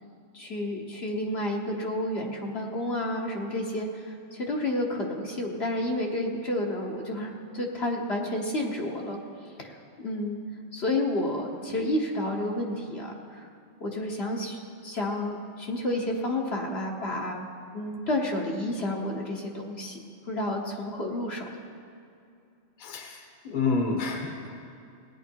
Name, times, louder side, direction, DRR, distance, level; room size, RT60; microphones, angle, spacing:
voice 1, 0.3-9.2 9.6-9.7 10.0-10.4 10.7-13.5 13.8-17.4 17.7-20.0 20.3-21.5, left 1 dB, 55° left, -1 dB, 1.4 m, -30 dB
voice 2, 22.8-23.2 23.4-24.5, left 4 dB, 40° left, 2 dB, 1.3 m, -28 dB
17.5 x 9.9 x 4.6 m, 2.6 s
omnidirectional pair, 1.3 m